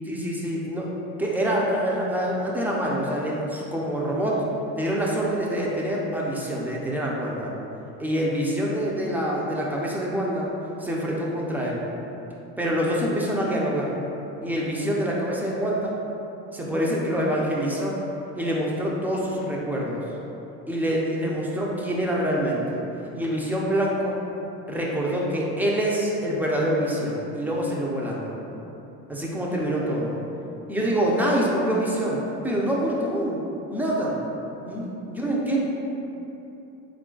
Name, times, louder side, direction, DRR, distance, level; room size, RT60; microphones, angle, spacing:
voice 1, 0.1-0.9 1.2-4.4 4.7-7.5 8.0-10.5 10.8-11.8 12.6-13.9 14.4-16.0 16.5-18.0 18.3-20.0 20.7-22.8 23.1-24.2 24.7-28.3 29.1-30.1 30.7-33.4 33.7-34.2 34.6-35.6, equal, 5° right, -4 dB, 0.5 m, -26 dB
3.7 x 2.5 x 3.8 m, 3.0 s
supercardioid pair, 105°, 35 cm